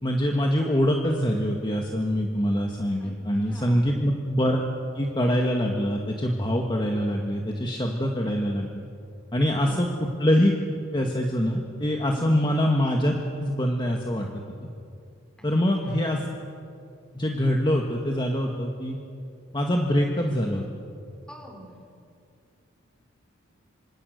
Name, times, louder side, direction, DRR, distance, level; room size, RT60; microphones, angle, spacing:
voice 1, 0.0-4.6 4.9-8.9 9.3-10.5 10.9-13.1 13.4-14.4 15.4-16.2 17.1-19.0 19.5-20.6, equal, 25° left, 1 dB, 1.8 m, -24 dB
voice 2, 3.4-3.9 12.1-12.3 15.4-15.5 15.8-16.1 21.3-21.7, equal, 5° left, 1 dB, 4.3 m, -45 dB
26.0 x 26.0 x 6.6 m, 2.4 s
head